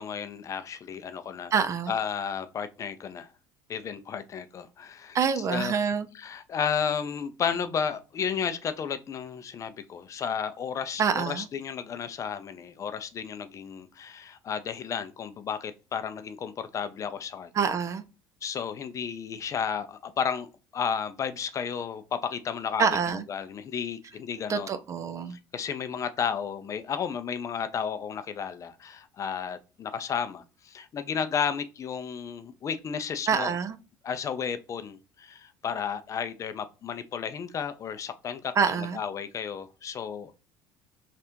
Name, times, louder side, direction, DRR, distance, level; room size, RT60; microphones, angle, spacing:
voice 1, 0.0-1.5 1.9-3.3 3.7-5.2 5.5-5.7 6.2-17.5 18.4-20.5 20.7-22.9 23.3-24.7 25.3-33.5 34.0-38.5 38.8-40.3, left 7 dB, 40° left, 0.5 m, -33 dB
voice 2, 1.5-1.9 5.1-6.1 11.0-11.5 17.5-18.0 22.8-23.3 24.5-25.4 33.3-33.8 38.6-39.0, right 6 dB, 35° right, 0.4 m, -26 dB
3.3 x 2.4 x 4.4 m
supercardioid pair, 105°, 9 cm